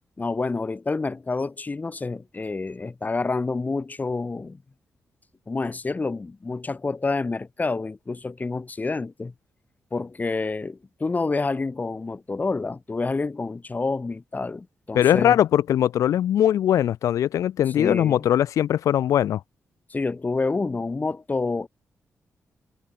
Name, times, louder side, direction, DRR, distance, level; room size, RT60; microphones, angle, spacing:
voice 1, 0.2-4.6 5.5-9.3 9.9-15.4 17.8-18.3 19.9-21.7, left 3 dB, 30° left, 1.6 m, -28 dB
voice 2, 14.9-19.4, left 11 dB, 85° left, 0.7 m, -20 dB
cardioid pair, 70°, 5 cm